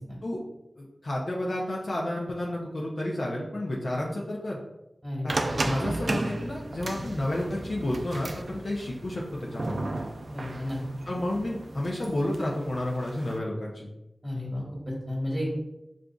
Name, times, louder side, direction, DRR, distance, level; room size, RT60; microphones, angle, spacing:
voice 1, 0.8-4.6 5.2-5.3 5.6-9.9 11.1-13.9, left 1 dB, 65° left, -4 dB, 0.6 m, -31 dB
voice 2, 5.0-5.7 6.9-7.0 10.3-10.8 14.2-15.5, left 1 dB, 15° right, -4 dB, 1.3 m, -33 dB
sound 1, 5.3-13.4, right 2 dB, 60° right, 0.3 m, -35 dB
5.1 x 2.4 x 2.3 m, 0.91 s
wide cardioid pair, 75°, 0 cm